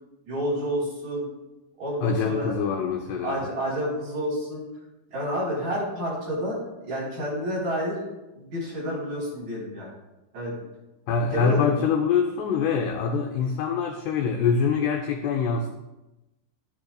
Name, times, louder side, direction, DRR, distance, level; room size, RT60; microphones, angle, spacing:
voice 1, 0.3-1.3 1.8-2.6 3.2-4.6 5.1-8.1 8.3-9.9 10.3-10.6 11.3-11.8, equal, 45° right, -6 dB, 4.9 m, -29 dB
voice 2, 2.0-3.5 11.1-15.7, left 6 dB, 85° left, 3 dB, 2.4 m, -24 dB
13.0 x 9.2 x 2.3 m, 1.0 s
omnidirectional pair, 5.5 m